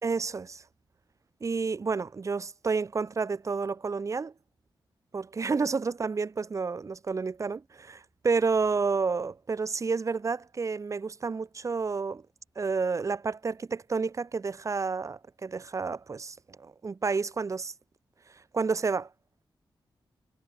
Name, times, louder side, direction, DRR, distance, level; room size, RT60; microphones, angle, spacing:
voice 1, 0.0-0.6 1.4-4.3 5.1-12.2 12.6-17.7 18.5-19.1, right 4 dB, 40° right, 2.9 m, -30 dB
wide cardioid pair, 150°, 8 cm